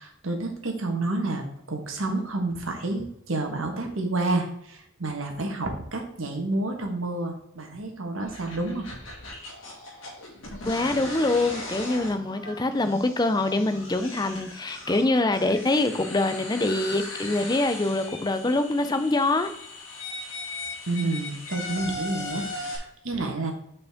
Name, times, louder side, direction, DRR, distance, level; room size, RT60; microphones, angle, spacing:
voice 1, 0.0-8.9 20.9-23.5, right 2 dB, 80° right, 3 dB, 1.5 m, -29 dB
sound 1, 8.2-22.8, left 2 dB, 75° left, 2.1 m, -38 dB
voice 2, 10.7-19.5, left 2 dB, 20° left, 9 dB, 0.5 m, -24 dB
7.0 x 5.3 x 3.6 m, 0.74 s
head